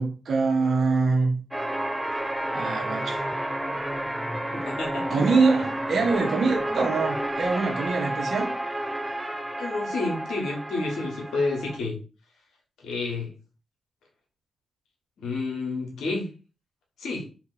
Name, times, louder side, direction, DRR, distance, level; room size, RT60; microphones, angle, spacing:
voice 1, 0.0-1.3 2.5-3.2 5.1-8.5, right 4 dB, 60° right, 0.8 m, -24 dB
sound 1, 1.5-11.8, right 1 dB, 10° right, 0.6 m, -31 dB
voice 2, 4.6-5.2 9.6-12.0 12.8-13.3 15.2-16.3 17.0-17.2, left 3 dB, 75° left, 1.2 m, -29 dB
2.8 x 2.7 x 3.9 m
supercardioid pair, 45°, 0 cm